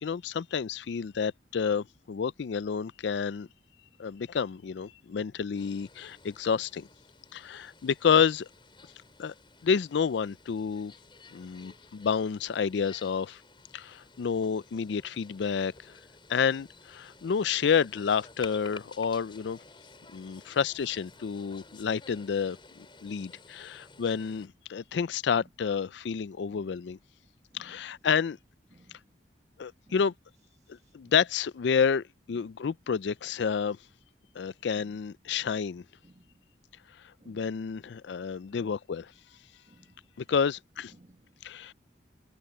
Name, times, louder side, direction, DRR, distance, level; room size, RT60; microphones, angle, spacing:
voice 1, 0.0-3.5 4.0-6.9 7.3-8.5 9.2-9.3 9.6-10.9 11.3-13.4 13.7-15.7 16.3-19.6 20.1-27.0 27.5-28.4 29.6-30.1 30.9-33.8 34.4-35.8 37.3-39.1 40.3-40.9 41.4-41.7, left 6 dB, 70° left, 0.4 m, -29 dB
sound 1, 5.5-24.5, left 4 dB, 25° left, 6.8 m, -53 dB
voice 2, 36.0-36.4 37.2-37.5 38.5-38.7 39.7-40.0 40.9-41.3, right 1 dB, 35° right, 1.6 m, -58 dB
head